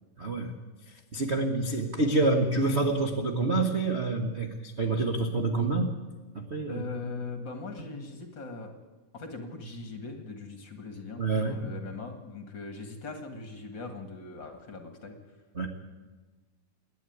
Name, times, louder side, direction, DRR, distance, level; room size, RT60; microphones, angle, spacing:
voice 1, 0.2-0.5 1.1-5.9 6.3-6.8 7.8-7.9 11.2-11.6 15.5-15.7, right 2 dB, 50° right, 3 dB, 0.7 m, -27 dB
voice 2, 6.7-8.7 9.1-15.2, left 3 dB, 40° left, 5 dB, 2.2 m, -40 dB
27.5 x 10.5 x 9.4 m, 1.3 s
omnidirectional pair, 3.8 m